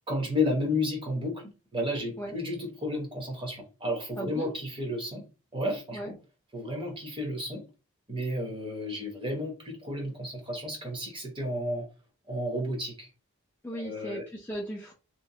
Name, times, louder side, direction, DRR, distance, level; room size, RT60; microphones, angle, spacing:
voice 1, 0.1-5.2 5.5-6.2 6.5-7.6 8.1-11.9 12.3-13.1 13.8-14.2, left 1 dB, 20° right, 0.7 m, -32 dB
voice 2, 4.2-4.5 5.9-6.1 13.6-14.9, equal, 10° left, 0.3 m, -37 dB
2.9 x 2.1 x 2.6 m
head